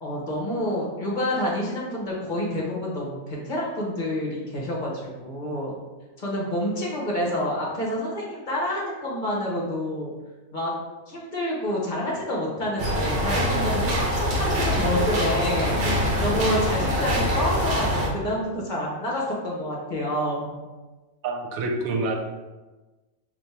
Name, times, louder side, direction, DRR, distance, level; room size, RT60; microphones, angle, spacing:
voice 1, 0.0-4.9 5.2-5.7 6.2-10.1 10.5-10.7 11.1-15.8 16.2-20.6, left 1 dB, 40° left, -4 dB, 0.8 m, -28 dB
sound 1, 12.8-18.1, equal, 50° right, 0.8 m, -24 dB
voice 2, 21.2-22.1, right 2 dB, 75° right, 2 dB, 1.0 m, -27 dB
3.4 x 2.6 x 4.2 m, 1.2 s
omnidirectional pair, 1.5 m